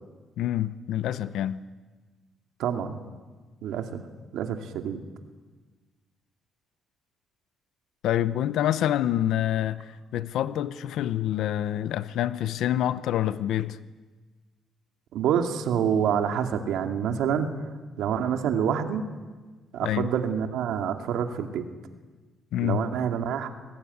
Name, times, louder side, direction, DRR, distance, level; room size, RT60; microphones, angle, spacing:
voice 1, 0.4-1.6 8.0-13.8 19.8-20.1 22.5-22.9, left 12 dB, 80° left, 0.8 m, -27 dB
voice 2, 2.6-3.0 3.6-4.0 4.3-5.0 15.1-17.5 18.0-19.0 19.7-21.7 22.6-23.5, right 8 dB, 85° right, 2.4 m, -27 dB
24.0 x 19.5 x 9.6 m
cardioid pair, 135°, 0 cm